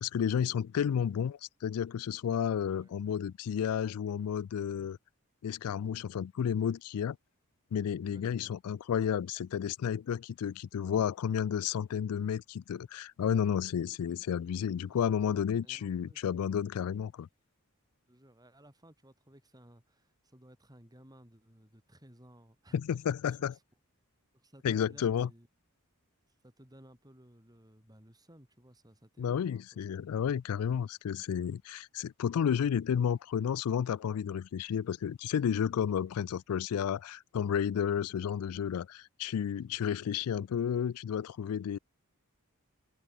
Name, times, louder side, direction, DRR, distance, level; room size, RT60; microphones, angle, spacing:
voice 1, 0.0-5.0 5.4-7.2 7.7-17.3 22.7-23.6 24.6-25.3 29.2-41.8, left 8 dB, 85° left, 0.3 m, -32 dB
voice 2, 2.4-3.1 7.8-8.5 14.9-15.1 15.6-16.2 18.1-22.8 23.3-23.6 24.3-25.5 26.4-29.8, right 1 dB, 20° right, 5.0 m, -58 dB
head